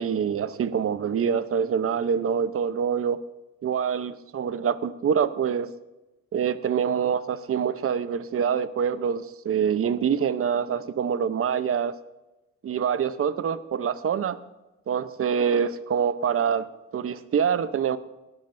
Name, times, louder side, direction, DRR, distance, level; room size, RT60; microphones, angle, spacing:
voice 1, 0.0-3.2 3.6-5.7 6.3-11.9 12.6-14.4 14.9-16.7 16.9-18.0, right 7 dB, 50° right, 13 dB, 0.8 m, -25 dB
19.0 x 13.0 x 2.7 m, 1.0 s
cardioid pair, 90°, 30 cm